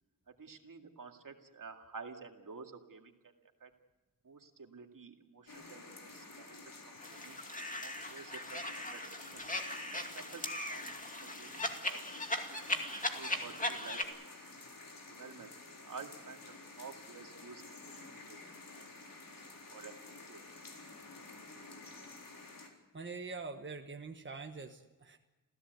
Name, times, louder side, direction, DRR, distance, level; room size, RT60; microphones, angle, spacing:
voice 1, 0.3-3.1 3.6-3.7 4.2-7.4 7.8-9.5 9.9-12.7 13.0-14.6 15.1-15.5 15.8-18.4 18.7-18.9 19.4-20.0 20.3-20.4, right 5 dB, 65° right, 4 dB, 2.3 m, -51 dB
sound 1, 5.5-22.7, left 3 dB, 75° left, 4.1 m, -51 dB
sound 2, 7.0-14.0, left 1 dB, 25° left, 2.3 m, -39 dB
voice 2, 22.9-25.2, right 4 dB, 35° right, 4 dB, 1.3 m, -44 dB
27.5 x 16.0 x 8.1 m, 1.1 s
wide cardioid pair, 115°, 34 cm